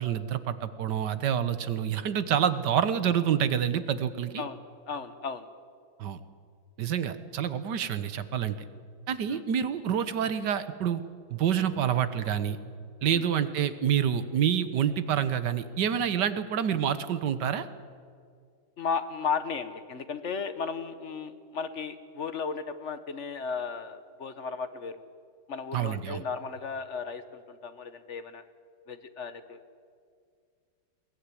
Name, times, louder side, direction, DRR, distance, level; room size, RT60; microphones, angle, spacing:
voice 1, 0.0-4.4 6.0-6.2 6.8-8.6 9.1-11.0 11.3-12.6 13.0-17.7 25.7-26.2, right 9 dB, 60° right, 13 dB, 1.5 m, -27 dB
voice 2, 4.9-5.5 9.3-9.4 13.1-13.2 18.8-25.0 25.5-28.4 28.9-29.6, left 5 dB, 45° left, 11 dB, 1.1 m, -35 dB
21.5 x 17.0 x 9.8 m, 2.2 s
omnidirectional pair, 2.2 m